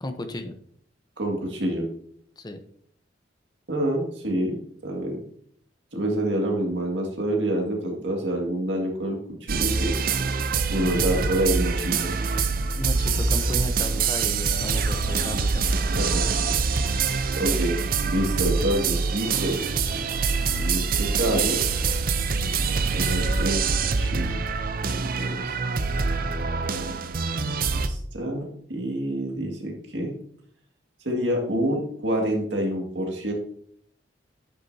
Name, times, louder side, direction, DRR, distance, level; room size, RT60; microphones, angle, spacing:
voice 1, 0.0-0.5 2.4-2.6 10.9-11.1 12.8-15.6, left 1 dB, 20° left, 8 dB, 0.8 m, -33 dB
voice 2, 1.2-1.9 3.7-4.6 4.8-5.2 5.9-9.9 10.7-12.1 16.0-16.2 16.9-17.8 18.0-19.6 20.5-21.6 22.7-23.7 24.0-24.4 24.8-25.5 27.7-30.1 31.0-33.3, right 1 dB, 70° right, 1 dB, 2.0 m, -27 dB
sound 1, 9.5-27.9, right 4 dB, 50° right, 0.6 m, -25 dB
10.0 x 6.3 x 2.7 m, 0.63 s
head